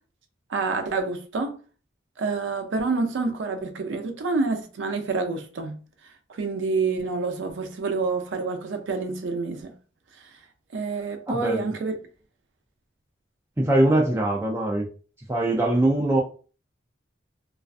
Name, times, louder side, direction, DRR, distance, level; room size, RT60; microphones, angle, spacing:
voice 1, 0.5-1.5 2.2-5.8 6.3-9.7 10.7-12.0, right 4 dB, 85° right, 0.4 m, -27 dB
voice 2, 11.3-11.7 13.6-14.8 15.3-16.2, right 1 dB, 15° right, 0.3 m, -22 dB
2.4 x 2.3 x 2.4 m
head